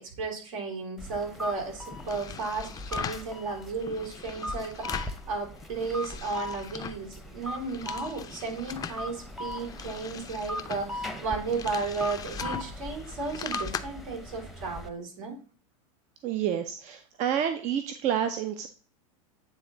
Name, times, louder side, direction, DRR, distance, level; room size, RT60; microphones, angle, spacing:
voice 1, 0.0-15.4, right 4 dB, 75° right, 0 dB, 3.9 m, -34 dB
sound 1, 1.0-14.9, left 1 dB, ahead, 0.9 m, -39 dB
sound 2, 1.9-3.3 3.8-5.2 5.6-7.1 7.4-9.0 9.5-13.8, left 8 dB, 20° left, 0.5 m, -40 dB
voice 2, 16.2-18.7, right 9 dB, 45° right, 8 dB, 0.7 m, -29 dB
9.3 x 3.4 x 4.0 m, 0.41 s
hypercardioid pair, 115°, 17 cm